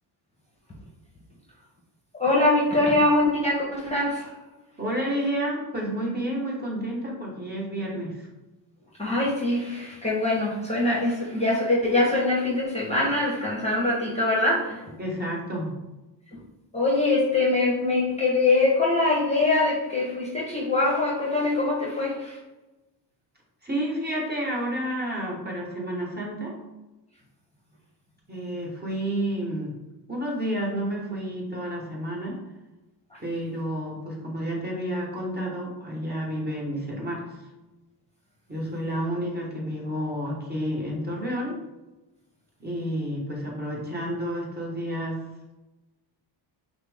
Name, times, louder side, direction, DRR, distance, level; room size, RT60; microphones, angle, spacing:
voice 1, 2.1-4.3 9.0-14.9 16.3-16.4 16.7-22.4 33.1-33.2, left 2 dB, 15° left, -4 dB, 1.0 m, -23 dB
voice 2, 4.8-8.3 15.0-15.8 23.6-26.6 28.3-29.8 30.1-32.4 33.2-37.3 38.5-41.6 42.6-45.2, equal, 20° right, -3 dB, 1.4 m, -30 dB
5.6 x 2.1 x 3.5 m, 1.1 s
cardioid pair, 75°, 47 cm